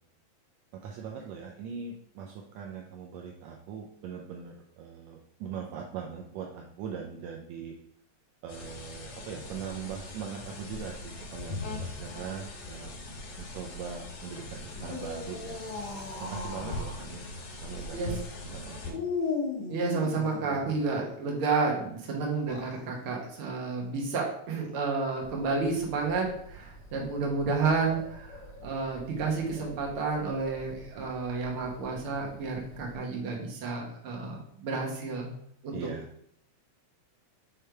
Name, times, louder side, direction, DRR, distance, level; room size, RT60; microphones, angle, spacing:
voice 1, 0.7-7.8 8.4-15.6 16.2-17.3 17.6-18.1 18.4-19.0 35.7-36.1, right 6 dB, 80° right, 0 dB, 1.8 m, -41 dB
sound 1, 8.5-18.9, left 2 dB, 90° left, 2.9 m, -41 dB
sound 2, 14.7-17.0 18.9-20.7 22.3-22.8, left 4 dB, 70° left, 2.4 m, -36 dB
voice 2, 19.7-35.3 35.6-35.8, right 4 dB, 55° right, -1 dB, 1.9 m, -31 dB
Bird, 25.2-33.0, right 1 dB, 50° left, 1.7 m, -48 dB
6.6 x 3.3 x 4.5 m, 0.69 s
omnidirectional pair, 3.4 m